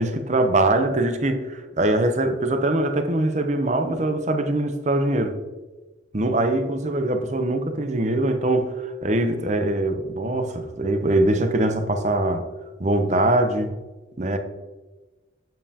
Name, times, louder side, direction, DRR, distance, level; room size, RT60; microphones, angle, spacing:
voice 1, 0.0-5.3 6.1-12.5 12.8-13.7 14.2-14.4, right 1 dB, 40° right, 7 dB, 0.7 m, -22 dB
7.7 x 7.1 x 2.8 m, 1.2 s
head